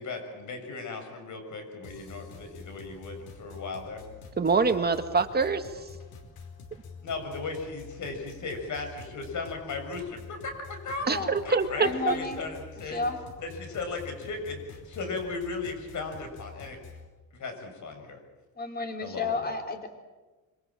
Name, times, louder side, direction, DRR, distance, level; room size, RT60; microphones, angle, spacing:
voice 1, 0.0-4.0 7.0-11.1 11.4-13.0 13.4-16.8 17.3-18.2 19.0-19.5, left 3 dB, 55° left, 5 dB, 7.0 m, -36 dB
sound 1, 1.8-17.1, left 4 dB, 80° left, 4.8 m, -47 dB
voice 2, 4.4-5.7 11.1-12.1, right 4 dB, 25° right, 7 dB, 1.7 m, -25 dB
voice 3, 11.0-11.4 11.8-12.4 12.9-13.2 18.6-19.9, left 3 dB, 25° left, 4 dB, 3.8 m, -32 dB
26.0 x 25.5 x 7.6 m, 1.2 s
cardioid pair, 120°, 36 cm